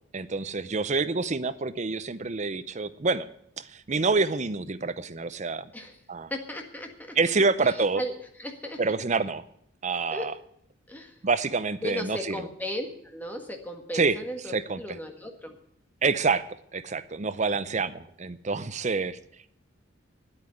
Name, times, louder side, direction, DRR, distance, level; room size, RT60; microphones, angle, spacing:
voice 1, 0.1-3.3 3.6-5.7 6.1-6.3 7.2-8.0 8.8-9.4 9.8-10.3 11.2-12.4 13.9-14.2 14.5-14.8 16.0-16.5 16.7-19.2, right 4 dB, 35° right, 13 dB, 0.6 m, -27 dB
voice 2, 6.3-7.2 7.6-8.1 8.4-9.0 10.1-10.3 10.9-11.2 11.8-15.6, left 1 dB, 10° left, 3 dB, 1.6 m, -36 dB
9.8 x 8.8 x 9.6 m, 0.72 s
head